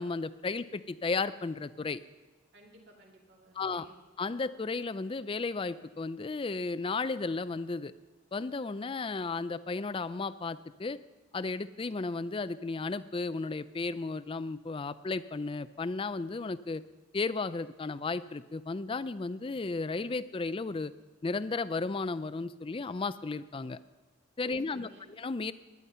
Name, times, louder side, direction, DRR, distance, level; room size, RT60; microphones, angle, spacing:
voice 1, 0.0-2.0 3.6-3.9 4.2-7.9 8.3-11.0 11.3-16.8 17.1-20.9 21.2-23.8 24.4-25.5, left 3 dB, 25° left, 15 dB, 0.4 m, -34 dB
voice 2, 2.5-4.0 24.4-25.1, right 1 dB, 55° right, 0 dB, 2.4 m, -56 dB
17.5 x 11.0 x 5.6 m, 1.3 s
head